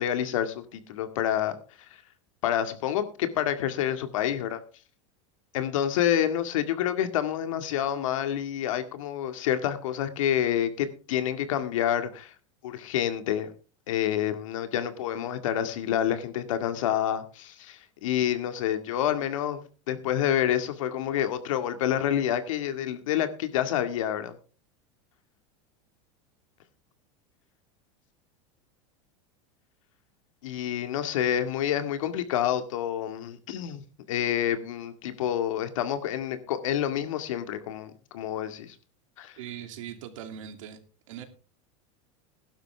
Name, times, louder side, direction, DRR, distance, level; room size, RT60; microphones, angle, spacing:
voice 1, 0.0-1.5 2.4-4.6 5.5-12.3 12.6-13.5 13.9-24.4 30.4-38.7 39.2-39.3, left 10 dB, 80° left, 2.0 m, -28 dB
voice 2, 39.4-40.8 41.1-41.2, right 9 dB, 80° right, 2.7 m, -40 dB
16.0 x 12.0 x 3.5 m
supercardioid pair, 130°, 16 cm